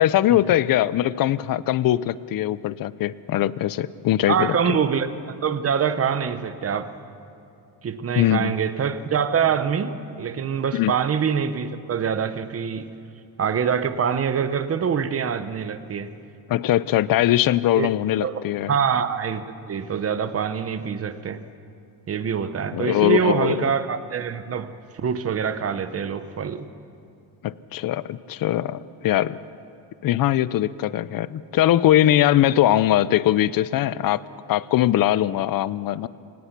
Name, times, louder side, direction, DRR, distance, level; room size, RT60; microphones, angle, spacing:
voice 1, 0.0-4.6 8.2-8.5 10.7-10.9 16.5-18.7 22.7-23.7 27.4-29.4 30.0-34.2 34.5-36.1, left 13 dB, 50° left, 18 dB, 0.5 m, -21 dB
voice 2, 4.3-5.1 5.4-6.9 7.8-12.9 13.4-16.1 17.7-17.9 18.2-18.3 18.7-21.4 22.1-26.7, right 7 dB, 30° right, 11 dB, 0.8 m, -25 dB
25.5 x 18.0 x 5.9 m, 2.5 s
cardioid pair, 165°, 46 cm